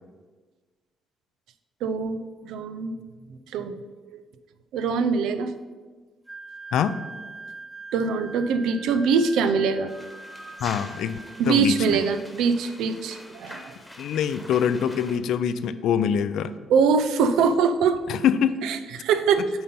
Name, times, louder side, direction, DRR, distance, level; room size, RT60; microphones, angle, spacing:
voice 1, 1.8-3.0 3.5-3.8 4.7-5.5 7.9-9.9 11.4-13.7 16.7-18.0 18.6-19.5, right 5 dB, 85° right, 10 dB, 0.5 m, -23 dB
Wind instrument woodwind instrument, 6.3-12.1, right 2 dB, 10° right, 1.0 m, -43 dB
sound 1, 9.9-15.2, left 1 dB, 10° left, 1.2 m, -44 dB
voice 2, 10.6-11.2 11.5-12.0 14.0-16.5 18.1-18.6, left 8 dB, 80° left, 13 dB, 0.4 m, -24 dB
7.8 x 3.9 x 5.5 m, 1.4 s
cardioid pair, 90°, 0 cm